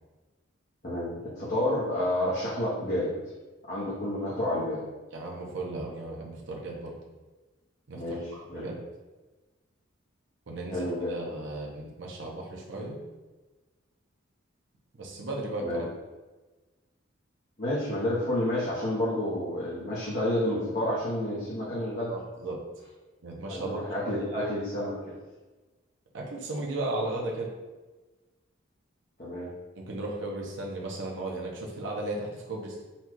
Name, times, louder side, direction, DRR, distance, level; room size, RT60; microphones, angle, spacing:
voice 1, 0.8-3.1 3.7-4.8 7.9-8.6 10.7-11.2 15.6-15.8 17.6-22.1 23.5-25.1 29.2-29.5, left 1 dB, 45° left, -8 dB, 0.9 m, -30 dB
voice 2, 5.1-7.0 7.9-8.8 10.5-13.0 15.0-15.9 22.1-22.6 23.2-24.6 26.1-27.5 29.8-32.8, right 2 dB, 65° right, -2 dB, 0.7 m, -35 dB
4.2 x 2.3 x 4.5 m, 1.2 s
head